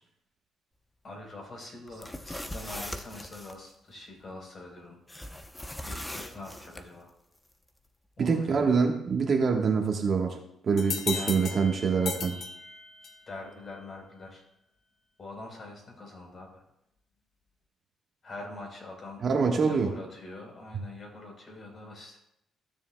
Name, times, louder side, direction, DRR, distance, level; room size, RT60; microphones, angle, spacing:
voice 1, 1.0-5.0 5.8-7.1 8.2-8.8 11.1-11.6 13.3-14.4 15.2-16.6 18.2-19.2 19.6-22.2, left 2 dB, 45° left, 0 dB, 3.8 m, -44 dB
sound 1, 1.9-3.6 5.1-6.8, left 1 dB, 10° left, 0.7 m, -40 dB
voice 2, 8.2-10.4 10.6-12.4 19.2-19.9, right 5 dB, 50° right, 2 dB, 1.2 m, -25 dB
sound 2, 10.8-13.3, left 6 dB, 65° left, 0.9 m, -36 dB
15.0 x 7.0 x 2.2 m, 0.78 s
cardioid pair, 90°, 0 cm